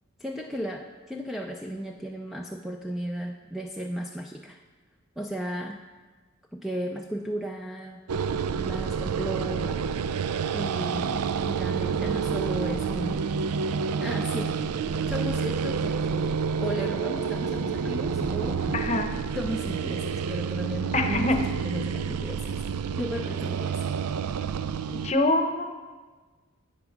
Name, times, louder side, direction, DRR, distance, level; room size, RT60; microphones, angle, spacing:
voice 1, 0.2-4.6 5.2-5.8 6.5-8.0 8.5-9.8 10.5-13.3 14.0-14.6 15.1-18.8 19.4-22.6 23.0-23.8 24.4-24.6, equal, ahead, 2 dB, 0.4 m, -35 dB
sound 1, 8.1-25.1, right 6 dB, 85° right, 0.4 m, -29 dB
voice 2, 18.7-19.1 20.9-21.4 24.9-25.7, left 2 dB, 30° left, 5 dB, 0.8 m, -24 dB
10.5 x 8.1 x 5.2 m, 1.4 s
head